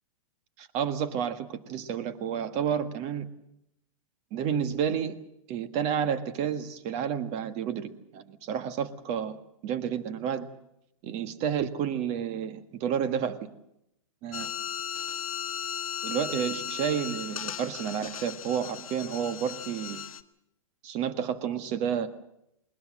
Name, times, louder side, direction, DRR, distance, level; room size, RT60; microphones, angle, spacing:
voice 1, 0.6-3.3 4.3-5.2 5.5-9.4 9.6-10.5 11.0-13.5 14.2-14.5 16.0-20.0 20.8-22.1, right 8 dB, 40° right, 11 dB, 1.6 m, -30 dB
sound 1, 14.3-20.2, left 8 dB, 80° left, 1.1 m, -36 dB
20.5 x 20.5 x 7.7 m, 0.81 s
hypercardioid pair, 115°, 18 cm